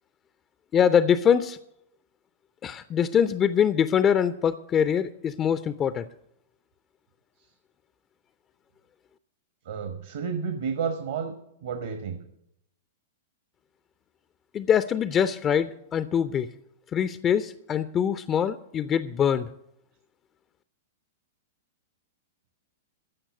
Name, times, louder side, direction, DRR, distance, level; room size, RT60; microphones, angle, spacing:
voice 1, 0.7-1.6 2.6-6.1 14.5-16.5 16.9-19.5, left 8 dB, 25° left, 14 dB, 0.5 m, -23 dB
voice 2, 9.7-11.3 11.6-12.2, right 6 dB, 60° right, 8 dB, 1.2 m, -31 dB
14.5 x 5.8 x 9.5 m, 0.78 s
figure-of-eight pair, 100°, 0 cm